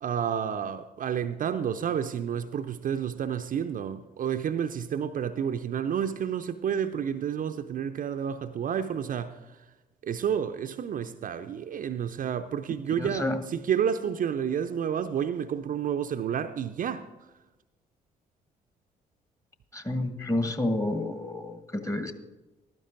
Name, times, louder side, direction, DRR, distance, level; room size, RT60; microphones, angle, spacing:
voice 1, 0.0-9.4 10.0-17.1, right 8 dB, 45° right, 0.5 m, -30 dB
voice 2, 13.0-13.4 19.7-22.1, left 1 dB, 15° left, 1.2 m, -29 dB
15.0 x 12.5 x 2.6 m
figure-of-eight pair, 45°, 20 cm